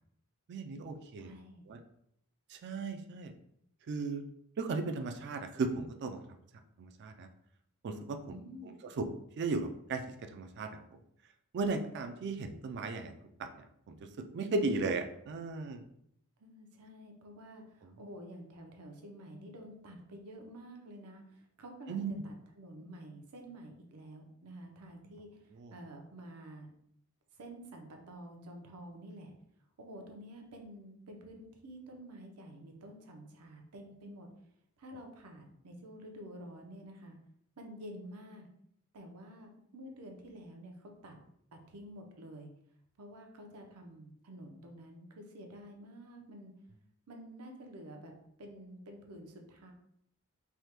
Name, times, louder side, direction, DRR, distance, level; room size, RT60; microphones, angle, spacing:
voice 1, 0.5-1.3 1.7-1.8 2.5-3.3 3.9-4.2 4.6-6.2 6.8-7.3 7.8-8.2 9.0-9.1 9.4-10.8 11.5-13.1 13.4-13.5 13.9-14.0 14.3-15.8 21.9-22.1 25.6-25.7, right 3 dB, 50° right, 7 dB, 0.3 m, -35 dB
voice 2, 1.2-1.6 8.3-8.7 16.4-26.7 27.4-29.3 29.8-34.3 34.8-37.2 37.6-38.5 38.9-41.2 41.5-42.5 43.0-46.5 47.1-48.1 48.4-49.7, right 1 dB, 80° right, 2 dB, 0.7 m, -49 dB
3.4 x 2.1 x 2.9 m, 0.72 s
head